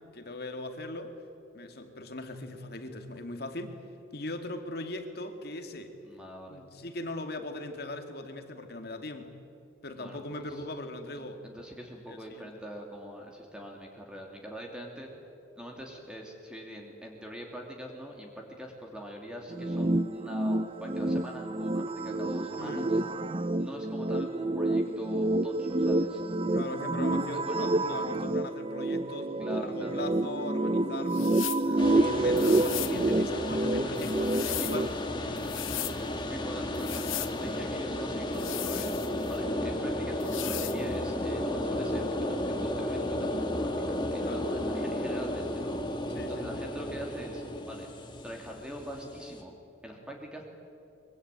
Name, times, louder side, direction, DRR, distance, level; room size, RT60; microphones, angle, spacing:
voice 1, 0.1-1.1 1.5-3.8 4.1-5.9 6.5-9.4 9.8-11.4 12.1-12.5 22.6-22.9 26.5-34.9 35.7-36.3 44.2-44.4 46.1-46.5, left 2 dB, 55° left, 6 dB, 2.4 m, -40 dB
voice 2, 6.0-6.6 9.9-10.6 11.2-15.1 15.6-23.0 23.6-26.2 27.3-27.7 29.4-30.0 32.4-32.7 34.4-34.9 35.2-35.4 35.9-45.8 46.3-47.9 48.2-49.5 49.8-50.5, equal, 5° right, 0 dB, 2.8 m, -43 dB
sound 1, 19.5-34.9, right 2 dB, 30° right, 0.6 m, -28 dB
sound 2, 31.1-31.7 32.4-33.0 34.0-34.8 35.4-36.0 36.7-37.3 38.3-39.4 40.2-40.8, left 16 dB, 90° left, 0.9 m, -37 dB
sound 3, 31.8-49.4, left 1 dB, 25° left, 1.8 m, -33 dB
24.0 x 23.5 x 9.1 m, 2.7 s
head